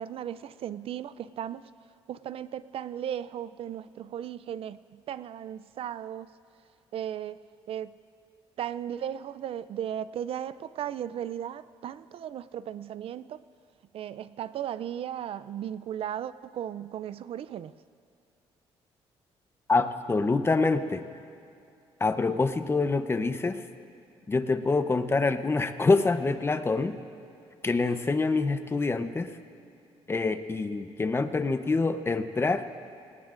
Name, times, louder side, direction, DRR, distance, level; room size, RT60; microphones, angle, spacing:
voice 1, 0.0-1.7 2.1-6.3 6.9-7.4 7.7-7.9 8.6-13.4 13.9-17.7, right 10 dB, 60° right, 16 dB, 0.4 m, -36 dB
voice 2, 19.7-21.0 22.0-23.6 24.3-27.0 27.6-29.3 30.1-32.6, left 3 dB, 20° left, 10 dB, 0.7 m, -26 dB
24.5 x 18.5 x 2.5 m, 2.7 s
cardioid pair, 105°, 11 cm